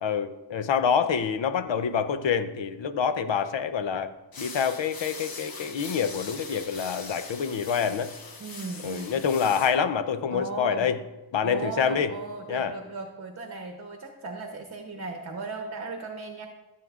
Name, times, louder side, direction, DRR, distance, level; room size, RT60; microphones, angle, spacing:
voice 1, 0.0-4.1 4.4-8.1 8.8-11.0 11.3-12.1 12.5-12.7, left 7 dB, 70° left, 11 dB, 0.7 m, -26 dB
sound 1, 4.3-9.7, left 4 dB, 50° left, 1.1 m, -41 dB
voice 2, 8.4-9.2 10.3-10.9 11.4-16.5, right 3 dB, 35° right, 3 dB, 0.9 m, -36 dB
14.0 x 7.8 x 2.4 m, 1.1 s
wide cardioid pair, 90°, 46 cm